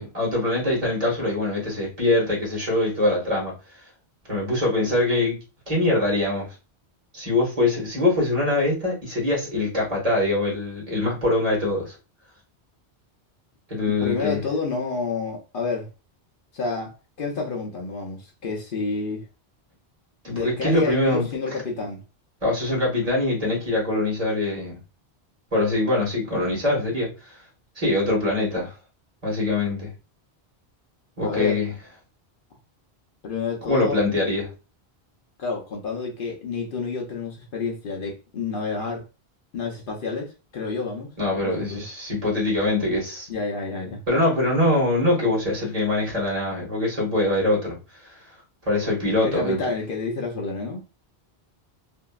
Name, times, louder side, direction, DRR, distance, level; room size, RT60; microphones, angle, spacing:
voice 1, 0.0-3.5 4.3-5.4 5.7-6.5 7.1-11.9 13.7-14.4 20.2-21.3 22.4-24.8 25.5-27.4 27.7-28.7 29.2-29.9 31.2-31.7 33.7-34.5 41.2-43.3 44.1-48.2 48.6-49.6, left 2 dB, 35° right, 1.5 m, -23 dB
voice 2, 14.0-15.9 16.5-19.2 20.3-22.0 31.2-31.6 33.2-34.0 35.4-39.0 39.5-41.1 41.4-41.8 43.3-44.0 49.2-50.9, left 4 dB, 60° left, 0.8 m, -29 dB
2.9 x 2.7 x 2.3 m
omnidirectional pair, 1.1 m